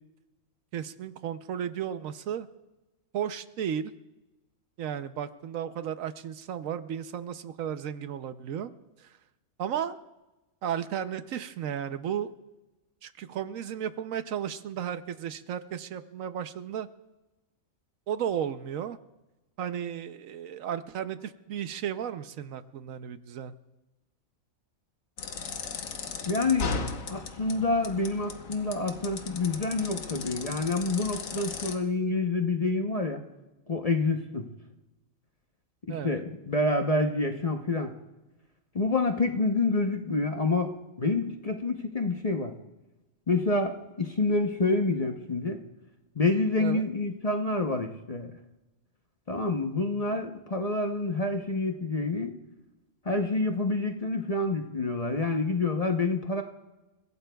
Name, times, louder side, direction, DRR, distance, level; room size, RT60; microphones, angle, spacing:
voice 1, 0.7-2.5 3.1-3.9 4.8-8.7 9.0-9.2 9.6-10.0 10.6-12.3 13.0-16.9 18.1-19.0 19.6-23.5 35.9-36.2 46.6-46.9, right 9 dB, 75° right, 11 dB, 1.1 m, -34 dB
sound 1, 25.2-31.7, left 5 dB, 70° left, 1.4 m, -37 dB
voice 2, 26.3-26.7 27.1-33.2 33.7-34.5 35.9-37.9 38.7-42.5 43.3-45.6 46.2-48.3 49.3-52.3 53.0-56.4, left 3 dB, 35° left, 4 dB, 0.8 m, -27 dB
30.0 x 16.5 x 2.3 m, 1.1 s
omnidirectional pair, 1.4 m